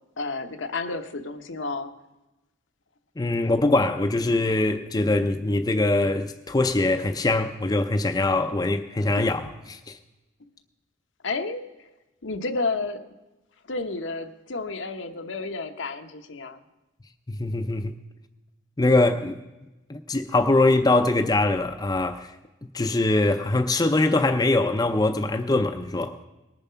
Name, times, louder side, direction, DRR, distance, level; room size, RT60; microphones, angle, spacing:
voice 1, 0.2-1.9 9.2-9.3 11.2-11.9 12.2-13.1 13.7-16.6, left 3 dB, 70° left, 0.9 m, -31 dB
voice 2, 3.2-10.0 17.3-18.0 18.8-19.4 19.9-22.3 22.7-26.2, left 2 dB, 20° left, 0.5 m, -23 dB
19.5 x 7.1 x 5.6 m
head